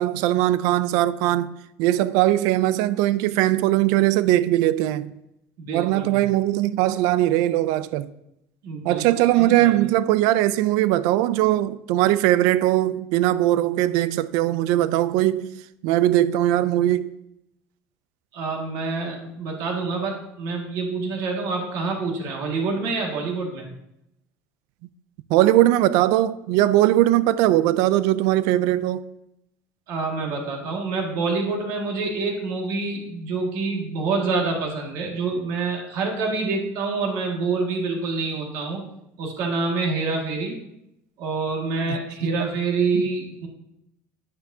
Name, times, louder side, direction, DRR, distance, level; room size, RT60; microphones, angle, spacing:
voice 1, 0.0-1.5 1.8-5.1 5.7-8.1 8.8-15.5 15.8-17.1 25.3-29.0 41.9-42.5 42.9-43.1, right 14 dB, 80° right, 0.4 m, -20 dB
voice 2, 5.6-6.2 8.6-9.0 9.4-9.7 18.3-23.7 29.9-38.8 39.2-40.6 41.2-43.5, right 4 dB, 60° right, 2.0 m, -27 dB
9.6 x 9.0 x 2.8 m
cardioid pair, 175°, 6 cm